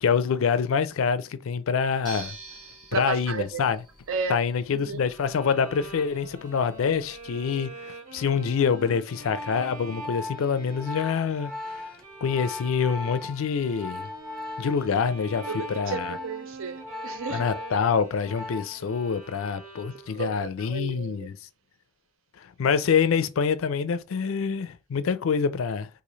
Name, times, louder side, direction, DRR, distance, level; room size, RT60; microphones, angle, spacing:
voice 1, 0.0-2.4 2.9-3.8 4.3-11.9 12.2-14.1 14.6-16.2 17.3-21.3 22.4-25.9, left 6 dB, 70° left, 0.4 m, -26 dB
sound 1, 2.0-7.4, right 3 dB, 20° right, 1.3 m, -47 dB
voice 2, 2.9-3.6 4.1-4.4 4.8-5.0 15.5-17.5 19.7-21.3, right 5 dB, 65° right, 0.5 m, -33 dB
Bowed string instrument, 5.1-20.4, right 3 dB, 40° right, 1.1 m, -45 dB
Organ, 8.9-18.9 19.2-19.5, left 2 dB, 5° left, 0.6 m, -38 dB
3.1 x 2.5 x 3.9 m
head